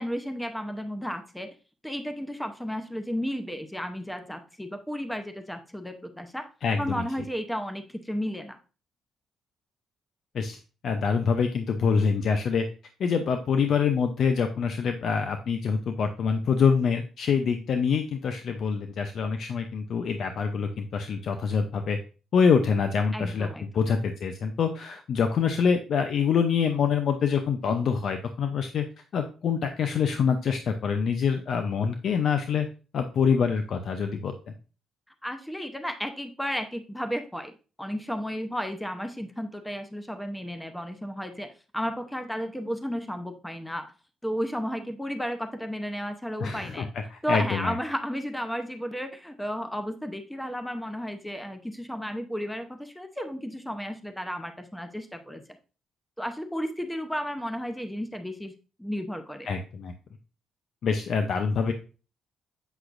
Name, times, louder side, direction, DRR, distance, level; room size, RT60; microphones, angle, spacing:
voice 1, 0.0-1.5 1.8-6.5 6.8-8.6 23.1-23.7 35.2-43.9 44.2-46.9 47.2-55.4 56.2-58.5 58.8-59.5, equal, 5° left, 7 dB, 0.8 m, -33 dB
voice 2, 6.6-7.0 10.3-10.6 10.8-12.7 13.0-22.0 22.3-23.5 23.7-28.8 29.1-32.7 32.9-34.5 46.4-47.7 59.5-59.9 60.8-61.7, left 6 dB, 60° left, 7 dB, 0.6 m, -25 dB
8.1 x 5.7 x 2.5 m, 0.35 s
cardioid pair, 90°, 0 cm